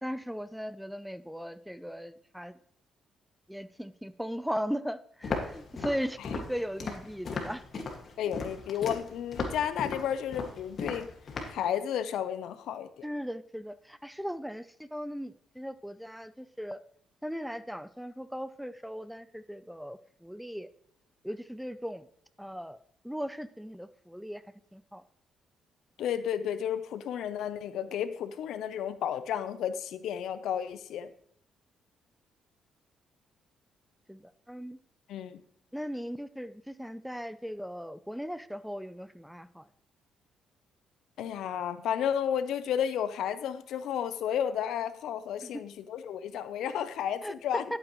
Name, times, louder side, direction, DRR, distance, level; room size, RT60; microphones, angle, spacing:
voice 1, 0.0-2.5 3.5-7.6 13.0-16.8 17.2-20.7 21.2-22.1 22.4-24.4 24.7-25.0 34.1-34.8 35.7-39.7 45.4-45.5 47.2-47.3, equal, ahead, 14 dB, 0.5 m, -38 dB
Walk footsteps, 5.2-11.6, left 4 dB, 50° left, 1.9 m, -36 dB
voice 2, 8.2-11.1 11.5-13.0 26.0-31.1 35.1-35.4 41.2-47.6, left 9 dB, 80° left, 12 dB, 0.6 m, -32 dB
11.5 x 8.9 x 3.1 m, 0.64 s
cardioid pair, 90°, 0 cm